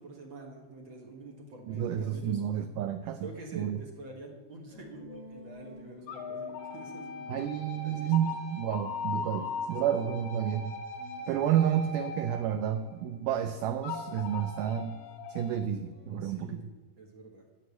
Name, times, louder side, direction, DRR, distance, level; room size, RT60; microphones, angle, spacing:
voice 1, 0.0-2.4 3.2-8.3 9.3-9.9 11.4-11.5 16.2-16.7 17.0-17.4, right 2 dB, 50° right, 0 dB, 1.5 m, -47 dB
voice 2, 1.7-3.3 3.5-3.8 7.3-10.8 11.3-15.0 15.3-16.6, right 10 dB, 80° right, 10 dB, 1.9 m, -30 dB
sound 1, 4.7-10.4 11.0-16.3, left 5 dB, 5° left, 4.1 m, -54 dB
sound 2, 5.0-5.6 6.1-13.2 13.8-15.6, left 4 dB, 70° left, 2.6 m, -39 dB
12.5 x 5.5 x 8.3 m, 1.3 s
omnidirectional pair, 4.2 m